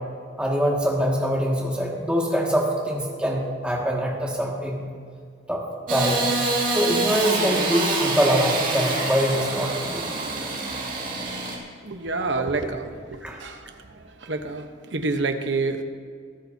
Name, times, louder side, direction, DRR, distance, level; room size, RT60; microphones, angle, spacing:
voice 1, 0.4-4.8 5.5-5.6 5.9-6.3 6.7-10.1 13.2-13.4, equal, 5° right, -3 dB, 1.9 m, -24 dB
Engine starting / Sawing, 5.9-11.6, right 2 dB, 45° right, 2.3 m, -26 dB
voice 2, 11.8-13.7 14.2-15.8, right 3 dB, 65° right, 6 dB, 1.0 m, -28 dB
23.5 x 13.0 x 2.8 m, 2.1 s
head